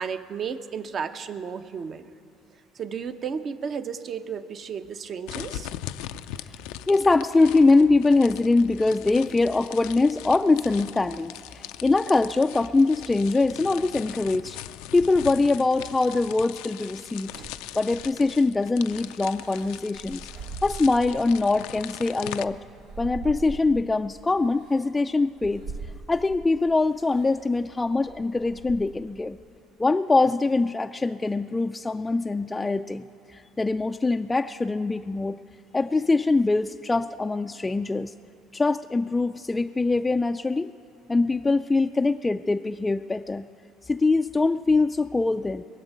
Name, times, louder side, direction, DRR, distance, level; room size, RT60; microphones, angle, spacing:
voice 1, 0.0-2.1 2.7-5.7, right 6 dB, 45° right, 9 dB, 0.8 m, -33 dB
sound 1, 5.3-22.4, left 13 dB, 85° left, 0.4 m, -40 dB
voice 2, 6.9-14.6 14.9-17.3 17.8-20.2 20.6-22.6 23.0-25.6 26.1-29.4 29.8-33.0 33.3-35.4 35.7-38.1 38.5-40.7 41.1-43.5 43.9-45.6, left 3 dB, 15° left, 6 dB, 0.3 m, -23 dB
sound 2, 17.3-18.5 19.4-21.3 21.7-24.0 24.6-24.8 25.3-26.5 27.0-27.4 27.8-29.1, right 4 dB, 90° right, 1.3 m, -41 dB
21.5 x 7.3 x 9.2 m, 2.4 s
supercardioid pair, 95°, 0 cm